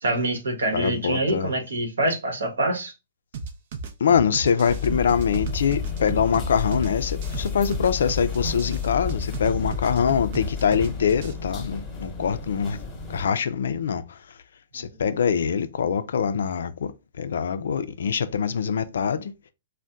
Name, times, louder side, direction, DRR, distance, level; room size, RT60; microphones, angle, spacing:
voice 1, 0.0-2.9, right 1 dB, 85° right, 0.9 m, -25 dB
voice 2, 0.7-1.5 4.0-12.8 13.1-14.2 14.7-16.9 17.2-19.3, left 7 dB, 75° left, 0.3 m, -24 dB
sound 1, 3.3-11.3, right 4 dB, 60° right, 0.5 m, -34 dB
sound 2, 4.7-13.3, left 6 dB, 20° left, 1.0 m, -31 dB
2.7 x 2.1 x 3.4 m
hypercardioid pair, 130°, 0 cm